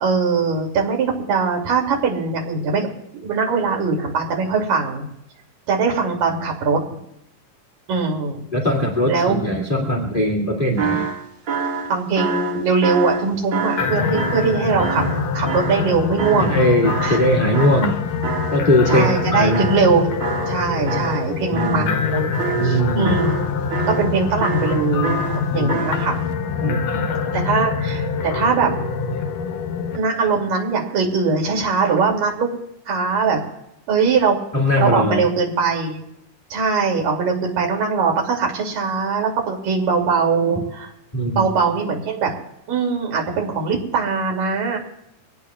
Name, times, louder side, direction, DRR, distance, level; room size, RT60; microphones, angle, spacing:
voice 1, 0.0-2.9 3.1-5.1 5.7-7.0 7.9-8.4 9.1-9.4 11.9-15.0 15.3-16.6 17.0-17.2 18.9-20.1 20.5-23.4 24.0-26.2 26.6-26.8 27.3-28.7 29.9-32.5 32.9-33.4 33.9-34.4 34.8-36.0 36.5-40.9 41.4-42.3 42.7-44.8, right 4 dB, 80° right, 0 dB, 4.3 m, -21 dB
voice 2, 8.5-11.1 16.4-18.0 18.5-19.7 21.5-21.9 22.6-23.1 25.5-25.7 26.6-27.1 34.5-35.2 41.1-41.5, equal, 20° left, 0 dB, 1.7 m, -20 dB
sound 1, 10.8-16.6 16.8-19.9 20.2-21.3 21.6-22.0 22.3-24.1 24.4-26.1, right 5 dB, 40° right, 2.4 m, -27 dB
sound 2, 13.8-30.0, left 6 dB, 75° left, 2.8 m, -24 dB
24.0 x 17.5 x 2.4 m, 0.82 s
omnidirectional pair, 3.9 m